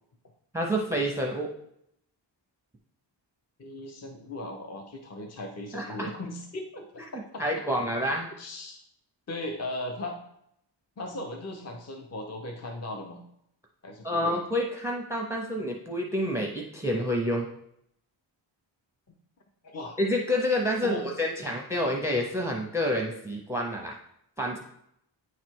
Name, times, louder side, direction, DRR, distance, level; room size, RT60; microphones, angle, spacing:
voice 1, 0.5-1.5 5.7-6.1 7.4-8.3 14.0-17.5 20.0-24.0 24.4-24.6, equal, 5° right, 1 dB, 0.5 m, -28 dB
voice 2, 3.6-7.1 7.3-7.4 8.4-8.8 9.3-10.2 11.0-13.2 13.8-14.3 19.6-20.0 20.8-21.1, left 1 dB, 35° left, 2 dB, 0.6 m, -37 dB
9.0 x 3.2 x 4.5 m, 0.75 s
wide cardioid pair, 160°, 44 cm